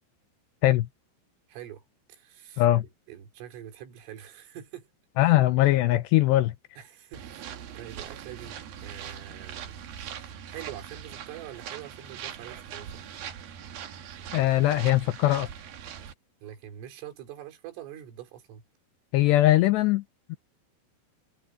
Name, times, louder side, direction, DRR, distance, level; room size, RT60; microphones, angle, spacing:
voice 1, 1.5-1.8 2.1-2.6 3.1-4.9 5.2-5.3 6.8-13.0 16.4-18.6, right 11 dB, 75° right, 6.0 m, -44 dB
voice 2, 5.2-6.5 14.3-15.5 19.1-20.0 20.3-20.4, left 15 dB, 85° left, 2.4 m, -21 dB
sound 1, 7.1-16.1, right 9 dB, 60° right, 3.1 m, -41 dB
omnidirectional pair, 5.8 m